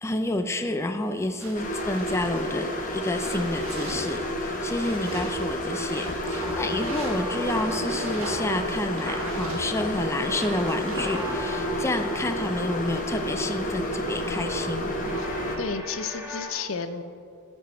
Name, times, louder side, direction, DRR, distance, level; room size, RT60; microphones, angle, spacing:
voice 1, 0.0-14.9, left 2 dB, 15° left, 6 dB, 0.4 m, -29 dB
sound 1, 1.4-11.5, right 1 dB, 80° right, 1.5 m, -39 dB
sound 2, 1.5-15.6, equal, 40° left, 1.1 m, -30 dB
sound 3, 6.1-16.5, left 2 dB, 10° right, 1.4 m, -42 dB
voice 2, 15.6-17.0, left 5 dB, 70° left, 10 dB, 0.6 m, -32 dB
15.0 x 6.3 x 4.3 m, 2.3 s
head